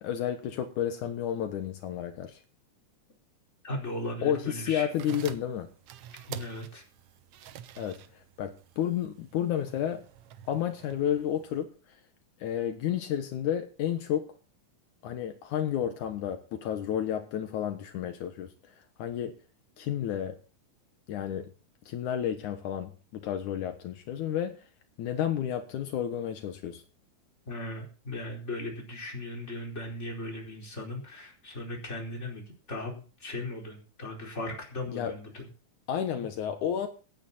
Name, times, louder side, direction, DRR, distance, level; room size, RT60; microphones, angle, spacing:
voice 1, 0.0-2.4 4.2-5.7 7.8-10.1 10.5-12.0 12.4-14.3 15.0-18.5 18.8-19.3 19.8-20.4 21.1-21.5 21.9-24.6 25.0-26.8 34.9-35.2 35.9-36.9, left 10 dB, 75° left, 2.5 m, -31 dB
voice 2, 3.6-4.9 6.3-6.8 27.5-35.4, left 1 dB, 20° left, 4.6 m, -37 dB
sound 1, 4.8-11.6, right 10 dB, 70° right, 1.6 m, -48 dB
17.5 x 9.3 x 4.2 m
omnidirectional pair, 3.6 m